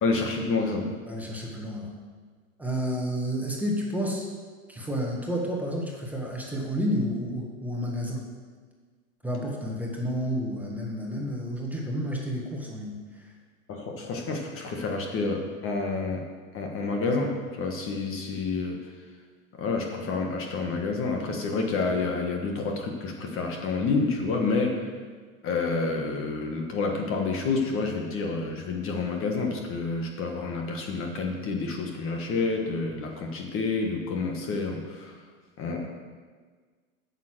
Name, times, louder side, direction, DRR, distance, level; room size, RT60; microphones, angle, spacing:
voice 1, 0.0-0.9 13.7-16.2 16.5-18.8 19.6-24.8 25.4-35.1 35.6-35.9, left 3 dB, 30° left, 2 dB, 1.5 m, -29 dB
voice 2, 1.1-1.9 2.6-4.3 4.7-8.3 9.2-13.3, equal, 5° right, -2 dB, 1.5 m, -30 dB
9.1 x 6.8 x 7.7 m, 1.5 s
supercardioid pair, 140°, 41 cm